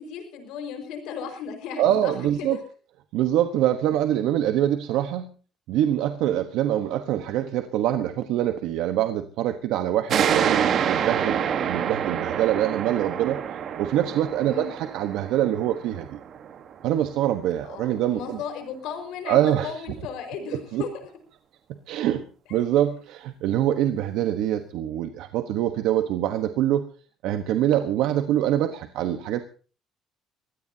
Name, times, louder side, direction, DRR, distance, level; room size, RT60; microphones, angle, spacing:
voice 1, 0.0-2.1 2.4-2.6 14.5-14.7 17.6-21.1 22.5-22.6, left 6 dB, 80° left, 6 dB, 5.1 m, -35 dB
voice 2, 1.8-2.6 3.1-5.3 5.7-13.4 13.8-16.2 16.8-18.4 19.2-19.7 20.7-20.8 21.9-22.2 22.5-26.8 27.2-29.4, right 11 dB, 85° right, 7 dB, 1.2 m, -24 dB
sound 1, 10.1-17.3, right 8 dB, 50° right, 1.4 m, -27 dB
23.5 x 16.5 x 2.8 m, 0.37 s
cardioid pair, 140°, 0 cm